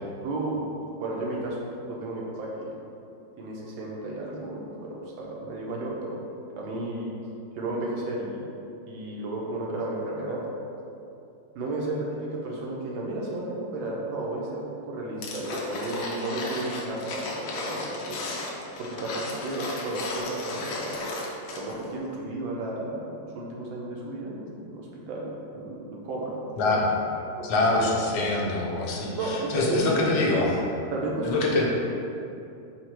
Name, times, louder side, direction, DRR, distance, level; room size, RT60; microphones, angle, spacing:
voice 1, 0.2-0.6 0.9-1.6 1.9-2.8 3.4-6.2 6.6-7.1 7.6-8.4 8.9-10.4 11.5-18.3 18.8-21.0 21.5-26.4 26.7-26.8 27.7-27.9 29.1-30.4 30.9-31.7, right 2 dB, 75° right, -3 dB, 1.5 m, -33 dB
sound 1, 15.2-21.8 22.1-22.2, left 2 dB, 70° left, 1.1 m, -34 dB
voice 2, 26.6-26.9 27.4-30.6 31.2-31.7, left 2 dB, 85° left, -2 dB, 1.5 m, -25 dB
4.3 x 2.4 x 4.5 m, 2.7 s
omnidirectional pair, 2.2 m